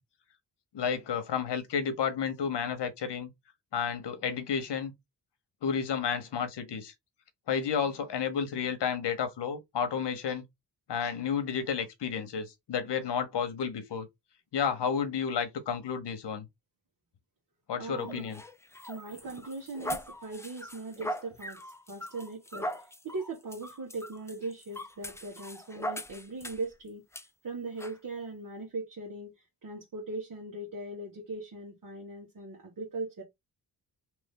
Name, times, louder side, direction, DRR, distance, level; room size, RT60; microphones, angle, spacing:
voice 1, 0.7-3.3 3.7-4.9 5.6-6.9 7.5-10.4 10.9-14.1 14.5-16.5 17.7-18.4, left 7 dB, 75° left, 1.0 m, -31 dB
voice 2, 17.8-18.3 18.9-27.0 27.4-33.2, right 3 dB, 50° right, 1.4 m, -39 dB
sound 1, 18.0-26.7 27.1-27.3 27.8-28.0, equal, 5° left, 0.4 m, -40 dB
3.0 x 2.6 x 3.6 m
cardioid pair, 75°, 41 cm